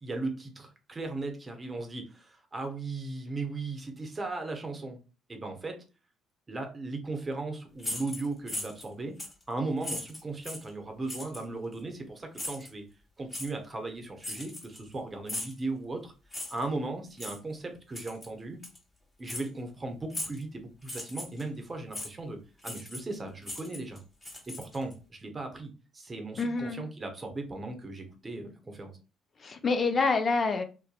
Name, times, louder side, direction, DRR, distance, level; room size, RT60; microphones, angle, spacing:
voice 1, 0.0-5.0 5.3-5.7 6.5-9.1 9.5-12.8 13.2-16.1 16.5-18.6 19.2-22.4 22.6-24.0 24.5-28.9, right 2 dB, 30° right, 0.7 m, -37 dB
sound 1, 7.8-8.9 9.2-9.4 9.8-10.7 11.1-11.4 12.3-12.7 13.3-13.5 14.2-14.9 15.3-15.6 16.3-16.7 17.2-17.4 17.9-18.3 18.6-18.8 19.3-19.5 20.1-20.4 20.8-21.4 21.9-22.1 22.6-23.2 23.4-24.9, left 1 dB, 20° left, 1.1 m, -38 dB
voice 2, 26.4-26.8 29.4-30.6, left 4 dB, 45° left, 0.4 m, -27 dB
2.7 x 2.2 x 2.3 m
hypercardioid pair, 55°, 0 cm